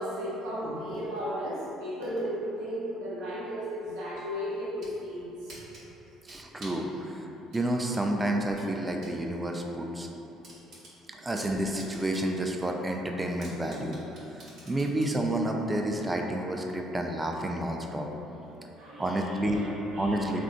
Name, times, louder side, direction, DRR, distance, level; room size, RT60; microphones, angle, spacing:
voice 1, 0.0-5.6 11.1-11.2 18.6-20.4, equal, 80° right, -8 dB, 0.7 m, -35 dB
sound 1, 4.5-5.0 5.5-6.9 7.5-9.2 9.5-9.6 10.0-10.1 10.4-12.4 12.7-12.8 13.4-15.2, right 1 dB, 60° right, 1.1 m, -49 dB
voice 2, 6.3-7.3 7.5-10.1 11.2-14.0 14.4-18.1 19.0-19.6 20.0-20.4, right 1 dB, 15° right, 2 dB, 0.3 m, -30 dB
3.5 x 2.5 x 2.4 m, 2.9 s
cardioid pair, 95°, 0 cm